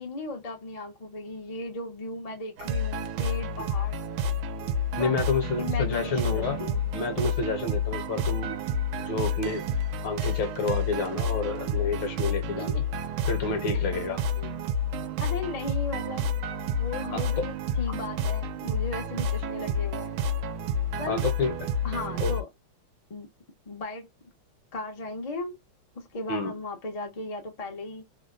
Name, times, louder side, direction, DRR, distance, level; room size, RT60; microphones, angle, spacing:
voice 1, 0.0-4.0 5.0-5.2 5.6-6.8 12.6-12.8 13.7-13.9 14.4-14.5 15.2-16.3 16.8-20.2 21.0-21.3 21.8-22.5 23.1-23.3 23.7-24.1 24.7-25.6 25.9-28.1, left 2 dB, 45° left, 0.4 m, -36 dB
sound 1, 2.6-22.4, left 2 dB, 80° right, 1.4 m, -29 dB
voice 2, 5.0-6.6 6.9-8.6 9.0-9.7 10.0-12.8 13.3-14.2 17.1-17.5 21.1-21.7 22.2-22.3 26.3-26.5, left 4 dB, 65° left, 1.5 m, -29 dB
3.5 x 2.2 x 2.4 m
omnidirectional pair, 2.3 m